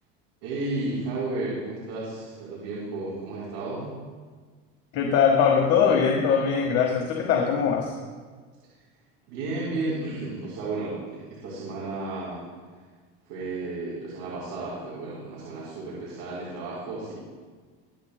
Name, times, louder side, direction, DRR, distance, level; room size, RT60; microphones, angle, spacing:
voice 1, 0.4-3.9 9.3-12.4 13.3-17.2, right 2 dB, 75° right, -7 dB, 3.9 m, -33 dB
voice 2, 4.9-7.9, left 6 dB, 50° left, -1 dB, 1.5 m, -21 dB
23.5 x 8.8 x 2.2 m, 1.5 s
cardioid pair, 140°, 31 cm